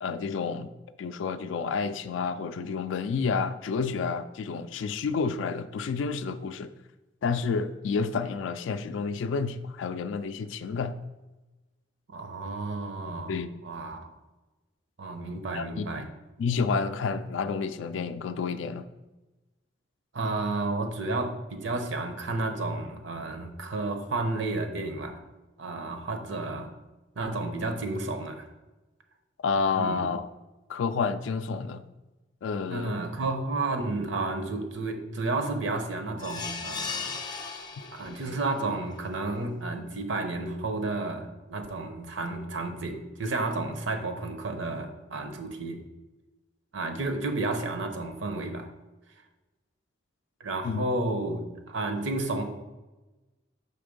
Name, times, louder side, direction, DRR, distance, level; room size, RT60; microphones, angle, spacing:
voice 1, 0.0-0.7 1.0-6.7 7.2-11.0 13.3-13.5 15.5-15.9 16.4-18.9 29.4-30.3 30.7-31.8 32.4-33.0 50.6-50.9, left 5 dB, 75° left, 10 dB, 0.3 m, -30 dB
voice 2, 12.1-13.3 13.6-14.1 15.0-16.1 20.1-25.2 25.6-26.7 27.2-28.5 29.7-30.1 32.7-37.1 37.9-45.8 46.7-48.7 50.4-52.4, right 2 dB, 75° right, 6 dB, 0.8 m, -31 dB
sound 1, 36.2-38.4 38.9-39.0 39.4-39.5, left 5 dB, 20° left, 0.5 m, -36 dB
5.8 x 3.4 x 5.2 m, 1.1 s
head